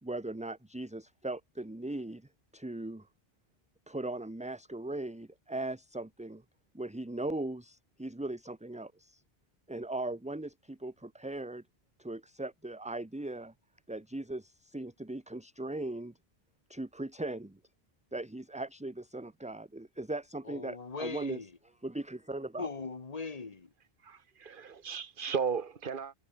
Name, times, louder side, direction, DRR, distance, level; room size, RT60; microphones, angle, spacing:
voice 1, 0.0-3.1 3.9-6.4 6.7-9.2 9.7-11.6 12.0-13.5 13.9-16.1 16.7-17.6 18.1-21.5 21.8-22.7, right 2 dB, 5° right, 0.8 m, -39 dB
voice 2, 20.5-21.4 22.6-23.7, left 4 dB, 40° left, 1.5 m, -39 dB
voice 3, 24.0-26.1, right 6 dB, 55° right, 1.5 m, -35 dB
omnidirectional pair, 1.1 m